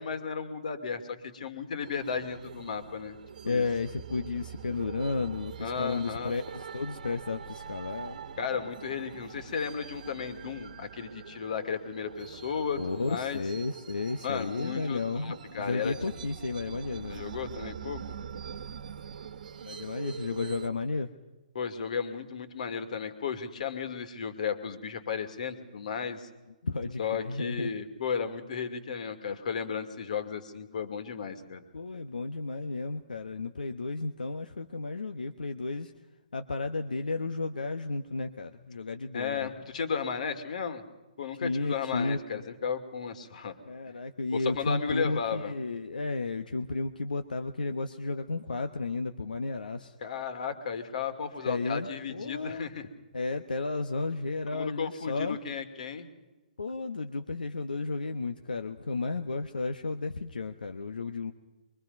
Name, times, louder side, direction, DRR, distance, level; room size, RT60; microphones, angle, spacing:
voice 1, 0.0-3.2 3.4-3.6 5.6-6.3 8.4-13.4 14.2-16.0 17.1-18.0 21.5-26.3 27.0-31.6 39.1-40.8 41.2-43.6 44.3-45.5 50.0-52.9 54.5-56.1, left 6 dB, 60° left, 9 dB, 2.5 m, -34 dB
sound 1, 1.8-20.7, right 7 dB, 65° right, 1.3 m, -44 dB
voice 2, 3.4-8.2 12.8-17.2 19.6-21.1 26.6-27.7 31.7-35.9 36.3-39.5 41.4-42.4 43.7-49.9 51.4-52.6 53.1-55.4 56.6-61.3, left 3 dB, 85° left, 7 dB, 1.1 m, -33 dB
23.5 x 23.5 x 5.4 m, 1.2 s
hypercardioid pair, 140°, 5 cm